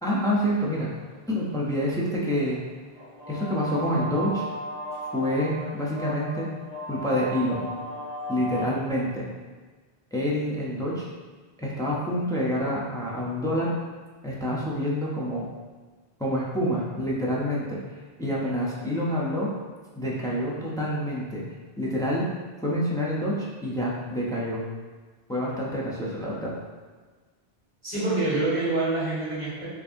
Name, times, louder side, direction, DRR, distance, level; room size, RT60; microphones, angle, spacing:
voice 1, 0.0-0.9 1.3-2.6 3.3-4.4 5.1-6.5 6.9-7.6 8.3-9.3 10.1-11.1 11.6-13.7 14.2-15.5 16.2-17.8 18.2-19.5 20.0-21.4 21.8-22.2 22.6-24.6 25.3-26.5, equal, 5° left, -6 dB, 0.3 m, -27 dB
sound 1, 0.8-8.7, equal, 85° left, 1.7 m, -36 dB
voice 2, 27.8-29.7, right 2 dB, 40° right, -11 dB, 1.8 m, -26 dB
4.6 x 2.6 x 2.5 m, 1.4 s
omnidirectional pair, 1.1 m